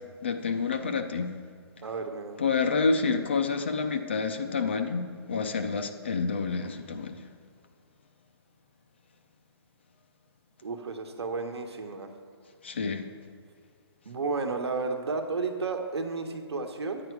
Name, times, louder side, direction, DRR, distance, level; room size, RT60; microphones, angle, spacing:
voice 1, 0.2-1.3 2.4-7.2 12.6-13.1, left 4 dB, 25° left, 6 dB, 0.5 m, -28 dB
voice 2, 1.8-2.4 10.6-12.1 14.0-17.0, right 4 dB, 70° right, 5 dB, 1.3 m, -32 dB
10.5 x 8.7 x 4.7 m, 2.2 s
hypercardioid pair, 175°, 14 cm